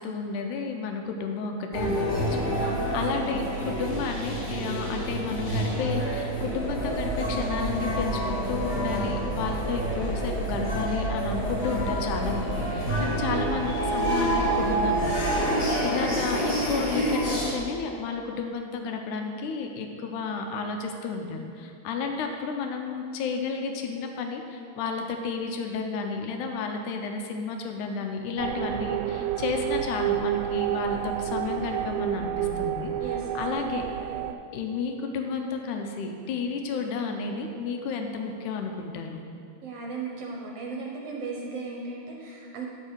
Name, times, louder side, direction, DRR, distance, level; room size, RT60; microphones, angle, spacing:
voice 1, 0.0-15.2 15.5-32.9 33.3-33.9 34.5-39.2, left 4 dB, 90° left, 4 dB, 2.3 m, -32 dB
sound 1, 1.7-17.5, right 1 dB, 30° left, 0.9 m, -28 dB
voice 2, 2.6-3.3 12.8-13.2 15.5-15.8 33.0-33.4 39.6-42.7, right 3 dB, 65° right, -1 dB, 1.7 m, -37 dB
sound 2, 6.3-15.5, right 1 dB, ahead, 2.0 m, -34 dB
sound 3, 28.4-34.3, right 11 dB, 85° right, 2.0 m, -29 dB
11.0 x 6.6 x 4.7 m, 2.4 s
omnidirectional pair, 3.4 m